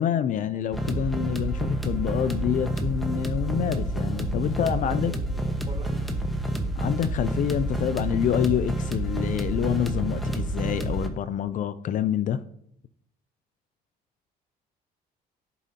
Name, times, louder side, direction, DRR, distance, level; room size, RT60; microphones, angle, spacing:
voice 1, 0.0-5.1 6.8-12.4, left 9 dB, 50° left, 14 dB, 0.4 m, -27 dB
sound 1, 0.7-11.1, right 1 dB, ahead, 1.1 m, -28 dB
voice 2, 4.5-6.1, right 4 dB, 25° right, 1 dB, 1.9 m, -44 dB
15.0 x 5.0 x 2.8 m, 0.71 s
cardioid pair, 110°, 17 cm